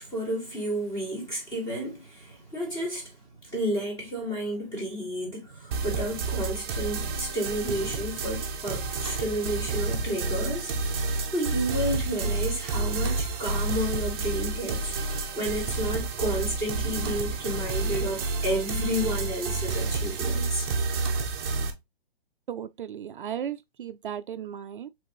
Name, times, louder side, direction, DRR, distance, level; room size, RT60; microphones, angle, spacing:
voice 1, 0.0-10.7 11.3-20.7, equal, 15° left, 2.1 m, -31 dB
sound 1, 5.7-21.7, right 3 dB, 25° right, 0.7 m, -30 dB
voice 2, 22.5-24.9, right 9 dB, 60° right, 0.4 m, -35 dB
5.1 x 3.4 x 3.0 m
hypercardioid pair, 160°, 30 cm